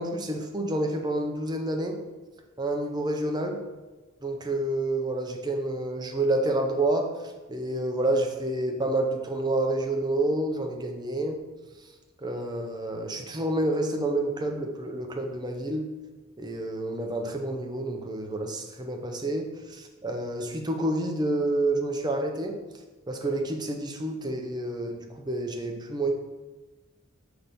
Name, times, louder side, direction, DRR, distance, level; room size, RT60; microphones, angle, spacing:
voice 1, 0.0-2.0 2.6-3.6 4.2-7.1 7.5-11.4 12.2-15.8 16.4-22.6 23.1-26.1, right 1 dB, 20° right, 3 dB, 0.6 m, -29 dB
5.8 x 3.4 x 5.3 m, 1.2 s
head